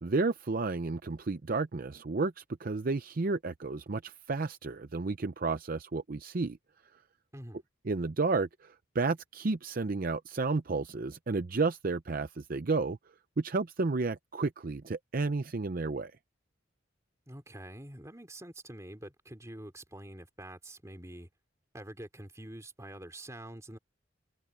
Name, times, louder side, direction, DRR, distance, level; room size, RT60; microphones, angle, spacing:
voice 1, 0.0-6.6 7.9-13.0 13.4-16.1, right 3 dB, 45° right, 0.6 m, -32 dB
voice 2, 17.3-21.3 21.7-23.8, right 1 dB, 15° right, 3.4 m, -46 dB
head